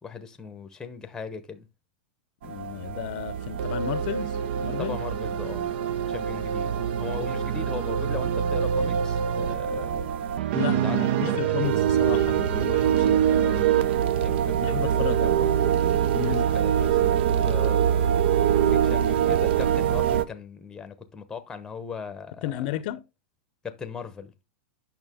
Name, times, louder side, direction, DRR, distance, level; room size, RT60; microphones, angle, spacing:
voice 1, 0.0-1.7 4.8-5.7 6.1-10.2 10.8-11.0 11.3-11.9 12.9-13.8 14.1-15.8 16.1-22.8 23.6-24.3, left 5 dB, 10° left, 0.8 m, -39 dB
voice 2, 2.4-5.0 10.5-13.7 14.6-15.3 16.1-16.5 22.4-23.0, left 13 dB, 50° left, 0.6 m, -33 dB
sound 1, 2.4-20.2, right 9 dB, 65° right, 0.7 m, -24 dB
8.8 x 5.9 x 3.6 m
supercardioid pair, 150°, 6 cm